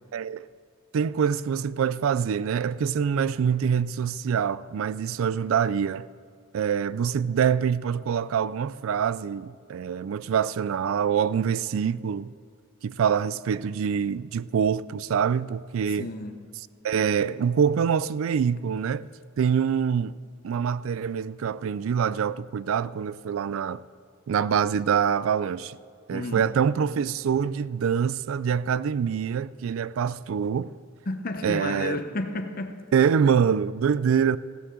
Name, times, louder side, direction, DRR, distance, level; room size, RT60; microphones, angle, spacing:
voice 1, 0.1-0.5 0.9-6.1 6.5-12.3 12.8-16.1 16.8-19.1 19.4-20.1 20.4-23.8 24.3-25.8 26.1-30.7 31.4-32.0 32.9-34.4, right 7 dB, 75° right, 0.3 m, -25 dB
voice 2, 16.0-16.4 26.1-26.5 31.1-32.8, left 2 dB, 45° left, 0.8 m, -32 dB
16.0 x 12.5 x 3.8 m
head